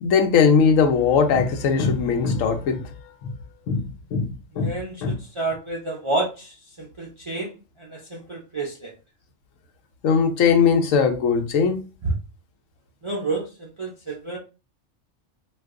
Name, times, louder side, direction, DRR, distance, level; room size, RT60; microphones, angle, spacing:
voice 1, 0.0-2.9 3.2-3.3 3.7-4.7 5.0-5.2 10.0-11.8, left 6 dB, 85° left, 1.0 m, -20 dB
voice 2, 4.5-8.9 12.0-12.2 13.0-14.4, right 2 dB, 45° right, 0.3 m, -30 dB
2.6 x 2.3 x 3.5 m
omnidirectional pair, 1.3 m